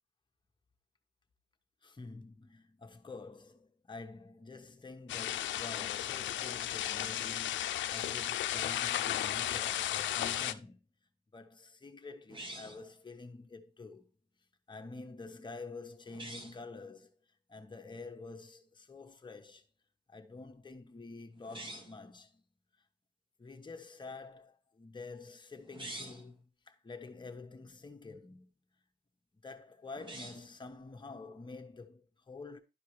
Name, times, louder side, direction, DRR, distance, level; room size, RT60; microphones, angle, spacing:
voice 1, 1.8-10.9 11.3-14.1 14.7-17.2 17.5-19.6 20.1-22.4 23.4-28.5 29.4-32.6, left 3 dB, 25° left, 1.2 m, -48 dB
sound 1, 5.1-10.5, left 12 dB, 70° left, 0.6 m, -34 dB
sound 2, 12.3-12.9 16.1-16.6 21.4-22.0 25.6-26.3 29.9-30.6, right 1 dB, 25° right, 1.5 m, -46 dB
12.0 x 4.8 x 3.2 m
cardioid pair, 90°, 20 cm